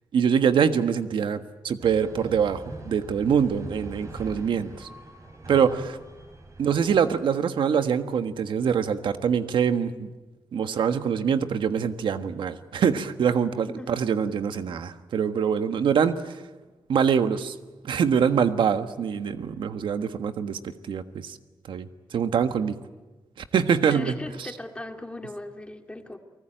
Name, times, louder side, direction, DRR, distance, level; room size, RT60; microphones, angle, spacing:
voice 1, 0.1-4.9 5.5-6.0 6.6-10.1 10.5-16.4 16.9-17.5 17.8-21.4 21.7-22.7 23.5-24.2, right 7 dB, 90° right, 9 dB, 1.4 m, -24 dB
sound 1, 1.8-7.0, right 2 dB, 40° right, 5.4 m, -42 dB
voice 2, 23.9-26.2, left 1 dB, 15° left, 5 dB, 2.2 m, -38 dB
29.5 x 19.5 x 9.0 m, 1.2 s
wide cardioid pair, 120°, 8 cm